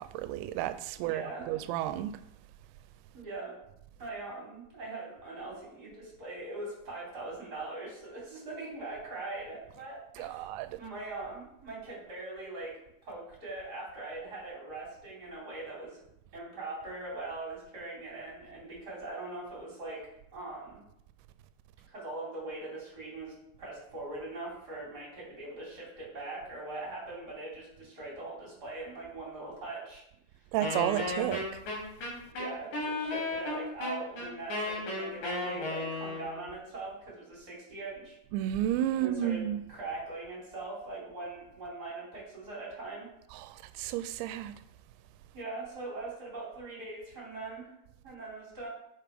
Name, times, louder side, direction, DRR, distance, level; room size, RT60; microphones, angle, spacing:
voice 1, 0.0-2.2 10.2-10.8 30.5-31.6 38.3-39.6 43.3-44.6, right 12 dB, 90° right, 2.8 m, -32 dB
voice 2, 1.0-1.5 3.1-3.5 4.0-10.5 10.8-12.7 13.0-16.0 16.3-20.0 20.3-20.8 21.9-30.0 32.3-38.2 38.9-43.1 45.3-47.7 48.0-48.7, right 2 dB, 25° right, 3.3 m, -41 dB
Wind instrument woodwind instrument, 30.6-36.4, left 2 dB, 55° left, 3.1 m, -34 dB
6.9 x 6.1 x 4.9 m
omnidirectional pair, 5.1 m